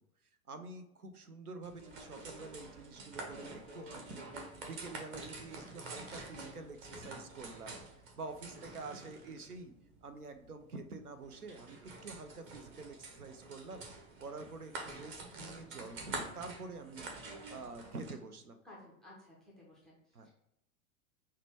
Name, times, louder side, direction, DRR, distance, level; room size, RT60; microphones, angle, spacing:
voice 1, 0.5-7.8 8.1-9.7 10.0-13.8 14.2-17.1 17.5-18.6 20.1-20.3, right 3 dB, 85° right, 7 dB, 0.6 m, -47 dB
sound 1, 1.6-18.1, right 2 dB, 30° right, 0.7 m, -47 dB
voice 2, 18.6-20.3, left 1 dB, ahead, -5 dB, 0.3 m, -56 dB
5.7 x 2.2 x 3.2 m, 0.82 s
figure-of-eight pair, 90°, 44 cm